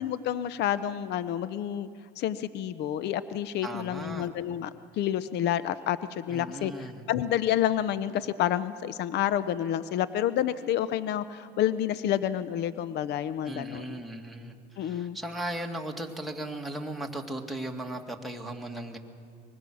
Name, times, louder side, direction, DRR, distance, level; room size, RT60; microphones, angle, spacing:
voice 1, 0.0-1.9 2.2-14.0 14.8-15.2, left 11 dB, 55° left, 14 dB, 0.8 m, -29 dB
voice 2, 3.6-4.3 6.3-7.1 13.4-19.0, right 1 dB, ahead, 0 dB, 2.3 m, -37 dB
24.0 x 21.5 x 6.3 m, 2.4 s
supercardioid pair, 95°, 21 cm